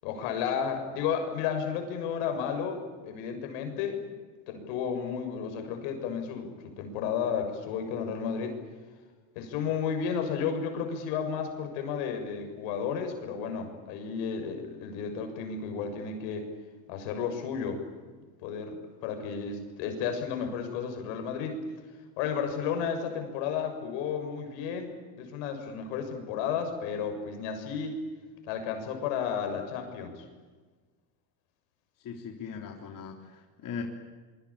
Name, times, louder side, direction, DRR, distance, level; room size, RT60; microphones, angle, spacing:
voice 1, 0.0-4.0 4.5-6.5 6.8-8.6 9.4-16.5 16.9-17.8 18.4-18.8 19.0-21.6 22.2-27.9 28.5-30.2, left 7 dB, 75° left, 6 dB, 7.0 m, -32 dB
voice 2, 32.0-33.8, left 6 dB, 40° left, 2 dB, 3.6 m, -39 dB
25.5 x 24.5 x 8.7 m, 1.4 s
supercardioid pair, 125°, 48 cm